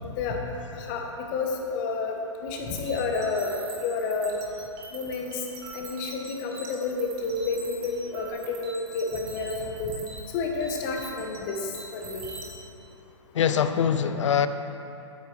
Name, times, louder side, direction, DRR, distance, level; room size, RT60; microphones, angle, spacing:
voice 1, 0.7-1.0 1.3-3.5 3.8-4.4 4.9-5.4 5.7-10.0 10.3-12.3, left 4 dB, 35° left, 2 dB, 1.1 m, -30 dB
sound 1, 2.7-12.5, right 3 dB, 45° right, 1.7 m, -44 dB
voice 2, 13.3-14.5, left 8 dB, 70° left, 10 dB, 0.5 m, -23 dB
8.9 x 8.3 x 3.3 m, 2.8 s
hypercardioid pair, 130°, 16 cm